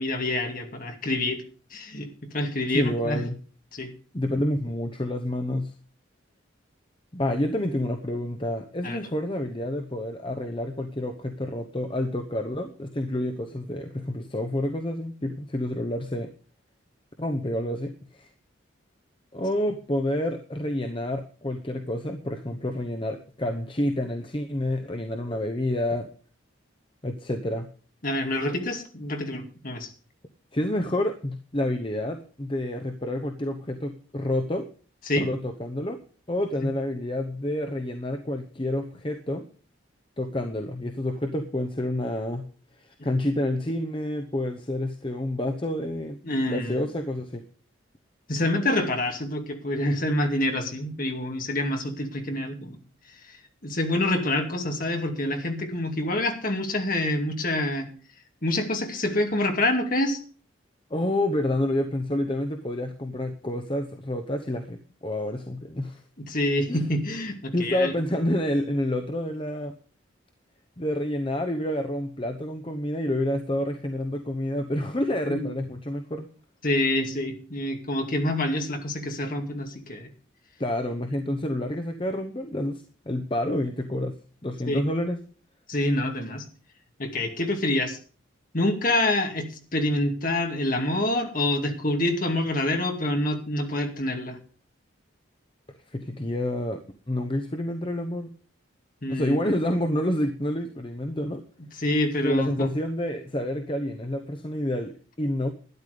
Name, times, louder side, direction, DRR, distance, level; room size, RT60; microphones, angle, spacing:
voice 1, 0.0-1.4 1.7-2.1 2.3-3.2 3.7-3.9 8.8-9.0 28.0-29.9 35.1-35.2 46.2-46.8 48.3-52.8 53.3-53.4 53.6-57.9 58.4-60.2 66.2-67.9 75.3-75.5 76.6-80.1 84.7-84.8 85.7-86.5 87.0-88.0 88.5-94.4 99.0-99.4 101.8-102.7, left 1 dB, 45° left, 4 dB, 2.3 m, -26 dB
voice 2, 2.7-3.4 4.1-5.7 7.1-16.3 17.2-18.3 19.3-26.1 27.0-27.7 30.5-34.7 35.2-36.0 36.3-39.4 40.2-42.5 42.8-46.2 46.5-47.4 60.9-66.0 66.7-66.8 67.5-69.7 70.8-76.3 80.6-85.2 95.9-96.8 97.1-98.3 99.1-101.4 102.2-105.5, left 1 dB, 25° left, 5 dB, 0.9 m, -28 dB
12.5 x 10.5 x 5.1 m, 0.40 s
head